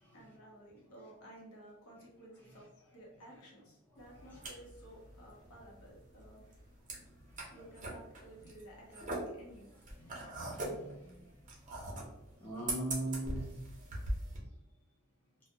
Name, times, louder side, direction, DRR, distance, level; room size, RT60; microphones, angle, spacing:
voice 1, 0.1-6.7 7.5-9.7 10.0-10.1, right 1 dB, 85° left, -2 dB, 0.8 m, -55 dB
sound 1, 4.0-14.4, right 1 dB, 35° right, 0.6 m, -42 dB
voice 2, 10.0-11.2 12.4-13.5, right 1 dB, 10° left, -5 dB, 0.5 m, -41 dB
2.2 x 2.1 x 2.7 m, 0.87 s
head